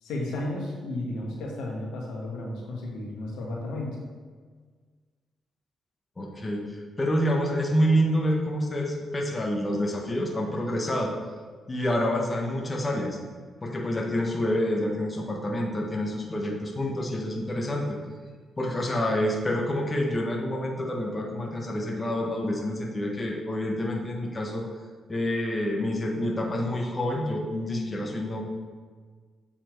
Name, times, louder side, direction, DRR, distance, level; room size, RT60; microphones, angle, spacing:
voice 1, 0.0-4.0, left 1 dB, 85° left, -2 dB, 1.5 m, -33 dB
voice 2, 6.2-11.1 11.7-13.2 13.6-18.0 18.6-24.6 25.1-28.4, equal, 30° left, 0 dB, 1.3 m, -27 dB
7.8 x 4.3 x 4.5 m, 1.6 s
supercardioid pair, 65°, 0 cm